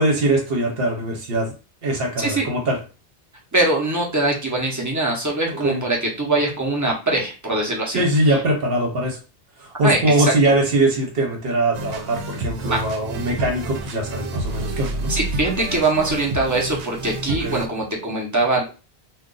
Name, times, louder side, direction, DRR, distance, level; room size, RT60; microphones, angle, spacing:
voice 1, 0.0-1.5 1.8-2.8 5.5-5.8 7.9-9.2 9.6-15.1 17.4-17.6, right 1 dB, 60° right, 2 dB, 1.0 m, -21 dB
voice 2, 3.5-8.0 9.8-10.3 12.7-12.8 15.1-18.6, right 2 dB, 20° right, -2 dB, 0.7 m, -22 dB
sound 1, 11.7-17.7, right 2 dB, 85° right, 0.9 m, -29 dB
2.5 x 2.3 x 3.8 m, 0.33 s
omnidirectional pair, 1.1 m